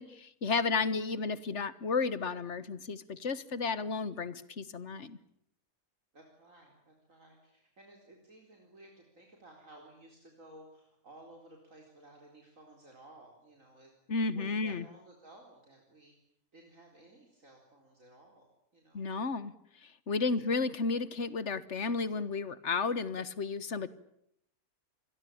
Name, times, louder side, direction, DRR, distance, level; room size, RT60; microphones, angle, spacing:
voice 1, 0.0-5.2 14.1-14.8 18.9-19.5 20.1-23.9, left 4 dB, 55° left, 16 dB, 1.6 m, -32 dB
voice 2, 6.1-13.9 14.3-16.2 16.5-18.5 18.7-19.1 20.2-20.6, right 1 dB, 65° right, 1 dB, 4.6 m, -56 dB
27.0 x 21.5 x 8.7 m, 0.74 s
omnidirectional pair, 1.5 m